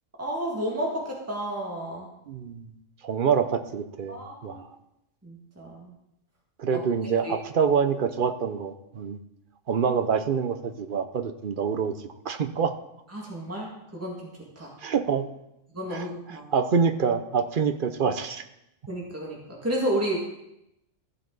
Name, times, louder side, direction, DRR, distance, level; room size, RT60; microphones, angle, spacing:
voice 1, 0.2-2.1 4.1-4.6 5.2-5.9 6.7-6.8 7.2-7.4 13.1-14.3 14.6-14.7 15.7-16.5 18.9-20.2, right 1 dB, 10° right, -3 dB, 1.9 m, -31 dB
voice 2, 2.3-2.7 3.0-4.7 6.6-9.2 9.7-11.9 12.2-12.8 14.8-15.3 15.9-18.4, right 6 dB, 50° right, 9 dB, 0.7 m, -26 dB
14.5 x 7.4 x 3.9 m, 0.85 s
omnidirectional pair, 1.3 m